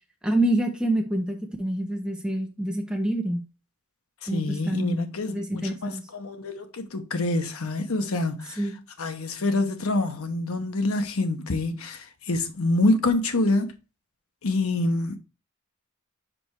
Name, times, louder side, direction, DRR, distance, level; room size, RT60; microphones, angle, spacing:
voice 1, 0.2-3.4 4.3-5.0 5.3-6.0 8.6-8.7, right 1 dB, 5° right, 1.2 m, -26 dB
voice 2, 4.3-8.6 9.0-13.7 14.4-15.2, left 2 dB, 75° left, 1.0 m, -26 dB
5.1 x 4.8 x 4.5 m
head